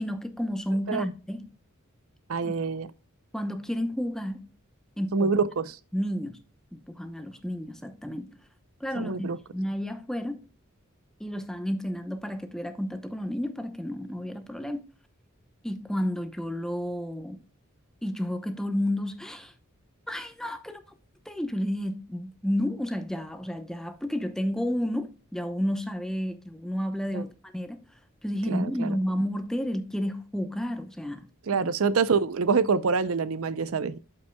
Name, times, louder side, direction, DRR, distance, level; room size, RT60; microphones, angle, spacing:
voice 1, 0.0-1.5 2.4-2.5 3.3-4.5 5.0-5.3 5.9-6.4 6.7-8.4 8.8-9.3 9.5-10.5 11.2-14.9 15.6-17.4 18.0-19.5 20.1-20.8 21.3-27.8 28.2-31.7, equal, 5° left, 0.8 m, -31 dB
voice 2, 2.3-2.9 5.1-5.8 8.9-9.4 27.1-27.2 28.5-29.0 31.5-34.0, right 5 dB, 80° right, 0.6 m, -26 dB
13.0 x 5.4 x 2.2 m
head